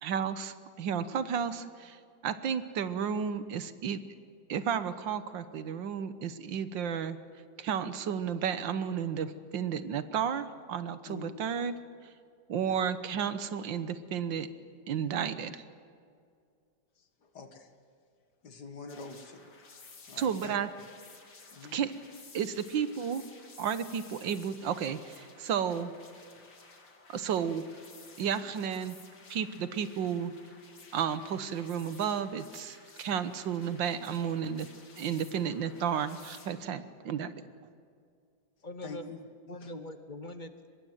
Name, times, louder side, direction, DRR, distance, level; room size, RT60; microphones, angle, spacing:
voice 1, 0.0-4.0 4.5-7.2 7.6-11.8 12.5-14.5 14.9-15.6 20.2-20.7 21.7-21.9 22.3-23.2 23.6-25.9 27.1-27.6 28.2-29.0 29.3-30.3 30.9-34.7 35.0-37.4, right 7 dB, 90° right, 12 dB, 1.8 m, -32 dB
voice 2, 17.0-17.7 18.4-19.5 20.1-20.6 21.3-21.8 38.6-39.2 39.6-39.7, left 4 dB, 65° left, 7 dB, 2.4 m, -46 dB
sound 1, 18.9-36.5, left 4 dB, 85° left, 3.3 m, -54 dB
voice 3, 38.6-39.2 39.5-40.7, left 1 dB, 30° left, 9 dB, 1.2 m, -42 dB
24.5 x 21.0 x 8.0 m, 2.3 s
omnidirectional pair, 2.0 m